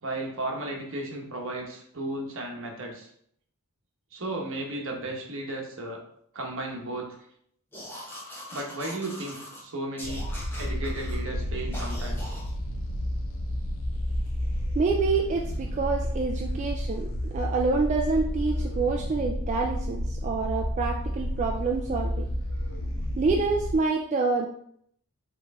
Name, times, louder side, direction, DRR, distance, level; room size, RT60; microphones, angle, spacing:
voice 1, 0.0-3.1 4.1-6.0 6.3-7.2 8.5-10.3 10.6-12.3, right 2 dB, 60° right, 0 dB, 1.0 m, -34 dB
sound 1, 7.7-9.6 10.0-11.2 11.7-12.5, left 1 dB, 10° left, 1.0 m, -41 dB
sound 2, 10.0-23.8, left 1 dB, 65° left, 0.6 m, -31 dB
voice 2, 14.7-17.1 17.3-22.3 23.2-24.5, right 4 dB, 30° right, 0 dB, 0.3 m, -27 dB
4.5 x 3.1 x 3.5 m, 0.68 s
head